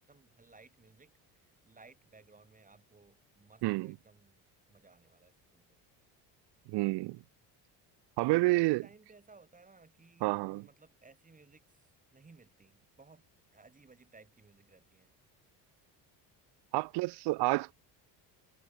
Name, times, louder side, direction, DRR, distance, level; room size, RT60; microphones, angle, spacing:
voice 1, 0.1-4.4 4.7-5.8 8.4-13.2 13.5-15.1, right 4 dB, 20° right, 4.5 m, -60 dB
voice 2, 3.6-3.9 6.7-7.2 8.2-8.9 10.2-10.7 16.7-17.7, right 22 dB, 70° right, 0.6 m, -29 dB
cardioid pair, 105°, 41 cm